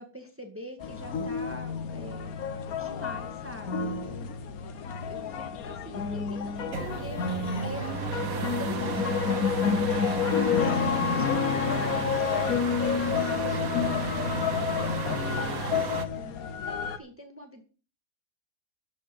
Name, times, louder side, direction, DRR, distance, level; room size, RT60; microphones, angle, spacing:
voice 1, 0.0-2.4 2.8-4.4 5.1-12.7 13.2-15.9 16.2-17.6, left 1 dB, 10° right, 4 dB, 2.2 m, -44 dB
sound 1, 0.8-17.0, left 6 dB, 65° left, 1.4 m, -29 dB
sound 2, 6.7-16.1, right 6 dB, 60° right, 1.5 m, -34 dB
14.5 x 5.5 x 7.9 m, 0.36 s
omnidirectional pair, 1.7 m